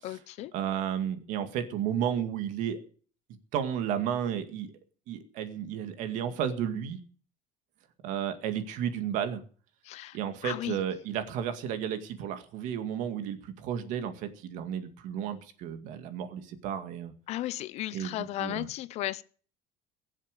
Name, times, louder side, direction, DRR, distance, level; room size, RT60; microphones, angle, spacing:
voice 1, 0.0-0.5 9.8-10.2 10.4-10.8 17.3-19.2, left 15 dB, 50° left, 0.6 m, -35 dB
voice 2, 0.5-2.8 3.5-4.7 5.1-7.0 8.0-9.4 10.1-17.1 17.9-18.7, right 9 dB, 60° right, 2.1 m, -33 dB
21.5 x 7.4 x 6.6 m
cardioid pair, 175°, 15 cm